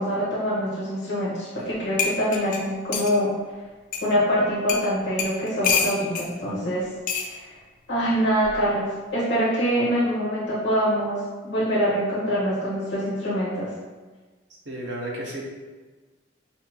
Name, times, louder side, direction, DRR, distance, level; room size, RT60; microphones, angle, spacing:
voice 1, 0.0-3.3 4.0-6.9 7.2-7.5 7.9-13.7, equal, 70° left, -8 dB, 1.1 m, -24 dB
sound 1, 1.6-1.7 2.0-3.2 3.9-4.0 4.7-4.9 5.2-6.3 7.1-7.3 8.4-8.7, left 6 dB, 45° left, 0.4 m, -26 dB
voice 2, 14.7-15.4, right 1 dB, 65° right, -3 dB, 0.9 m, -32 dB
5.6 x 2.1 x 3.0 m, 1.3 s
head